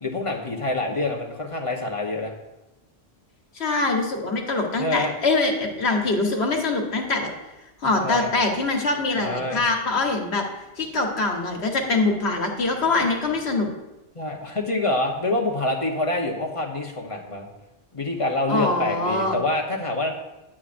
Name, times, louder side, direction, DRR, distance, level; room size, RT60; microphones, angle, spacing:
voice 1, 0.0-2.3 4.8-5.1 8.0-8.3 9.2-9.6 14.1-17.5 17.9-20.1, left 2 dB, 30° left, 0 dB, 1.0 m, -26 dB
voice 2, 3.5-7.3 7.8-10.4 10.8-13.7 18.5-19.4, left 3 dB, 75° left, 1 dB, 1.5 m, -23 dB
9.7 x 8.6 x 2.5 m, 0.99 s
omnidirectional pair, 1.1 m